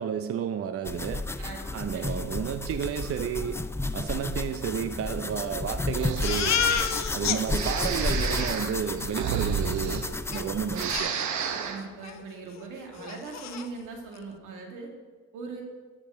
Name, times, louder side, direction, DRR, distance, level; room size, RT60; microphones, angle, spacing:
voice 1, 0.0-1.2 1.7-3.6 3.9-6.6 7.1-11.2, right 8 dB, 50° right, 9 dB, 0.6 m, -31 dB
sound 1, 0.8-11.0, left 2 dB, 10° left, 0.4 m, -32 dB
voice 2, 1.9-2.5 11.6-14.9 15.3-15.6, right 4 dB, 90° right, 2 dB, 2.1 m, -40 dB
Breathing, 5.9-6.9 7.5-10.4 10.7-11.8, right 7 dB, 70° right, 1.1 m, -32 dB
Crying sobbing, 6.2-7.4 7.8-7.9 8.1-8.5 10.3-10.4 10.9-11.7 12.0-12.2 12.6-12.7 13.0-13.7, left 8 dB, 60° left, 0.9 m, -30 dB
13.0 x 5.3 x 6.3 m, 1.4 s
cardioid pair, 90°, 30 cm